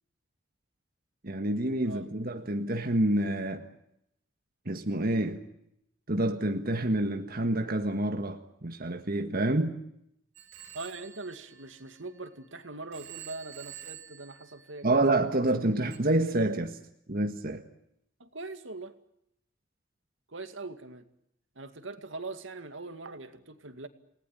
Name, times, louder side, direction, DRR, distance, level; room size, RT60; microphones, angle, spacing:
voice 1, 1.2-3.7 4.7-5.4 6.1-9.8 14.8-16.8 17.1-17.6, right 1 dB, 50° right, 5 dB, 1.7 m, -28 dB
Telephone, 10.3-12.5 12.9-15.2 15.9-16.0, right 11 dB, 85° right, 4.4 m, -48 dB
voice 2, 10.7-15.3 18.2-19.0 20.3-21.0 21.6-23.9, right 3 dB, 70° right, 9 dB, 2.2 m, -42 dB
29.5 x 19.0 x 8.9 m, 0.80 s
head